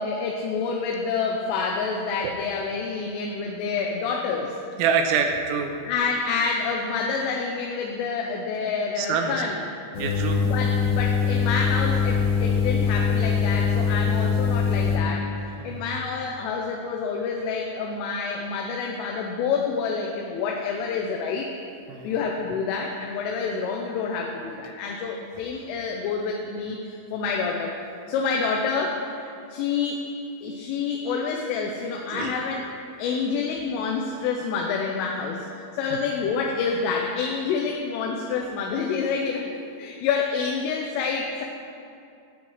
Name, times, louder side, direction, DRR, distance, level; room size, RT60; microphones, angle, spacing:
voice 1, 0.0-4.6 5.8-9.6 10.4-21.5 22.0-27.7 28.1-30.1 30.4-32.6 33.0-39.5 39.8-41.5, left 5 dB, 80° left, 0 dB, 3.4 m, -28 dB
voice 2, 4.8-5.8 9.0-9.4 10.0-10.4 15.6-15.8 21.9-22.1 32.1-32.3 35.9-36.0, right 6 dB, 85° right, 4 dB, 3.5 m, -26 dB
sound 1, 9.9-15.0, left 6 dB, 65° left, 2.9 m, -23 dB
16.5 x 12.5 x 3.2 m, 2.5 s
omnidirectional pair, 5.8 m